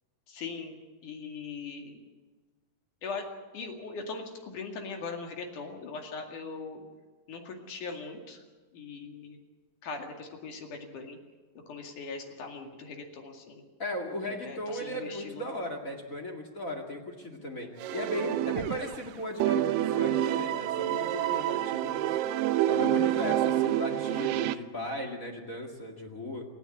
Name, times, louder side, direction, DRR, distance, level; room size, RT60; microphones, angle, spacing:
voice 1, 0.3-0.8 1.0-2.0 3.0-6.8 7.3-8.4 8.7-9.4 9.8-11.2 11.7-13.6 14.2-15.5, left 4 dB, 65° left, 3 dB, 3.7 m, -40 dB
voice 2, 13.8-22.1 22.7-26.4, left 1 dB, 30° left, 2 dB, 2.1 m, -36 dB
sound 1, 17.8-19.1 19.4-24.5, right 13 dB, 80° right, 2.4 m, -28 dB
27.5 x 9.9 x 9.6 m, 1.3 s
omnidirectional pair, 3.9 m